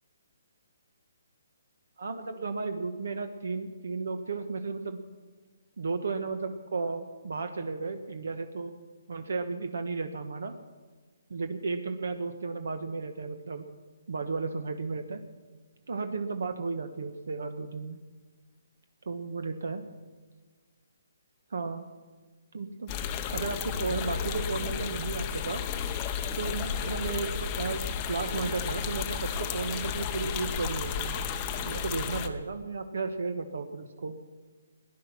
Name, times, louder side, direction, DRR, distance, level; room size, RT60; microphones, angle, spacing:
voice 1, 2.0-5.0 5.8-8.7 9.1-10.6 11.3-13.7 14.1-15.2 15.9-18.0 19.1-19.8 21.5-21.9 22.5-22.9 23.3-25.6 26.3-31.1 31.6-34.2, right 4 dB, 65° right, 7 dB, 1.2 m, -34 dB
sound 1, 22.9-32.3, left 7 dB, 15° left, 0.7 m, -33 dB
19.0 x 11.0 x 5.9 m, 1.4 s
hypercardioid pair, 175°, 0 cm